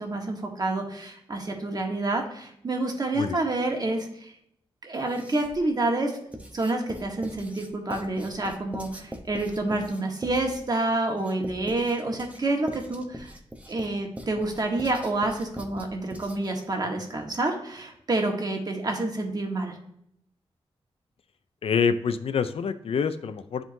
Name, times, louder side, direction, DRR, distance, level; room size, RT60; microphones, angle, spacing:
voice 1, 0.0-4.3 4.8-6.1 6.5-13.3 13.7-19.8, right 2 dB, 40° right, 2 dB, 1.3 m, -28 dB
Writing, 4.9-5.7 6.3-16.6, equal, 15° right, 0.8 m, -42 dB
voice 2, 21.6-23.6, left 6 dB, 70° left, 11 dB, 0.4 m, -26 dB
10.5 x 3.6 x 2.6 m, 0.73 s
wide cardioid pair, 115°, 10 cm